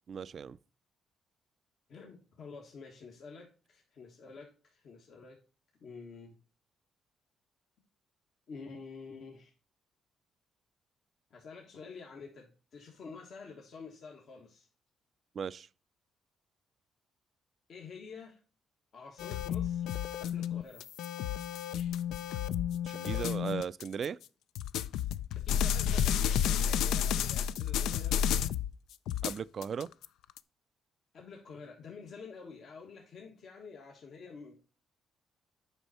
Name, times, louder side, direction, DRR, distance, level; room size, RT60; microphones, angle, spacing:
voice 1, 0.1-0.6 15.3-15.7 22.8-24.2 29.2-29.9, right 7 dB, 50° right, 0.3 m, -37 dB
voice 2, 1.9-5.4 5.8-6.4 8.5-9.5 11.3-14.7 17.7-18.4 18.9-20.8 25.4-28.5 31.1-34.5, left 5 dB, 65° left, 1.4 m, -49 dB
sound 1, 19.2-24.1 24.6-28.7 29.1-30.4, left 9 dB, 85° left, 0.4 m, -31 dB
8.0 x 5.3 x 4.2 m
cardioid pair, 90°, 0 cm